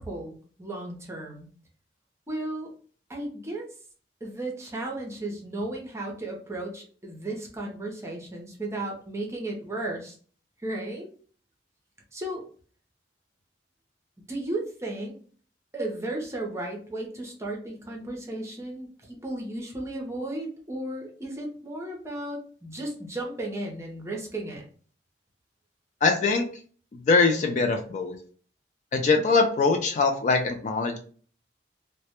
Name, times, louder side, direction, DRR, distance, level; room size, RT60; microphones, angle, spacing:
voice 1, 0.0-1.5 2.3-2.7 3.1-3.7 4.2-10.2 10.6-11.1 12.1-12.4 14.3-15.1 15.7-24.6, right 1 dB, 15° right, -1 dB, 0.6 m, -34 dB
voice 2, 26.0-26.4 27.1-28.1 28.9-31.0, left 4 dB, 45° left, 5 dB, 0.3 m, -22 dB
2.1 x 2.1 x 2.8 m, 0.43 s
head